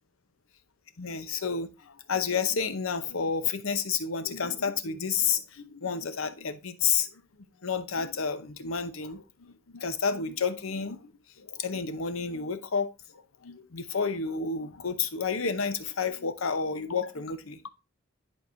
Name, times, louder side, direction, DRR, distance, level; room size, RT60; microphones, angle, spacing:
voice 1, 1.0-7.2 7.6-11.1 11.4-17.7, left 6 dB, 70° left, 0.8 m, -30 dB
11.0 x 4.7 x 2.6 m
head